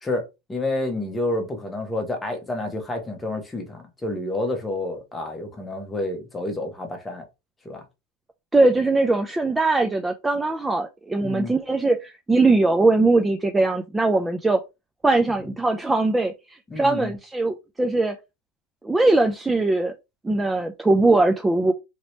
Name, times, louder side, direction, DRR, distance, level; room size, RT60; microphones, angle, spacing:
voice 1, 0.0-7.2 7.6-7.8 11.2-11.5 15.4-15.5 16.7-17.1, left 2 dB, 10° left, 0.9 m, -29 dB
voice 2, 8.5-14.6 15.0-18.2 18.8-19.9 20.2-21.7, right 2 dB, 10° right, 0.3 m, -21 dB
2.9 x 2.8 x 3.1 m
supercardioid pair, 130°, 0 cm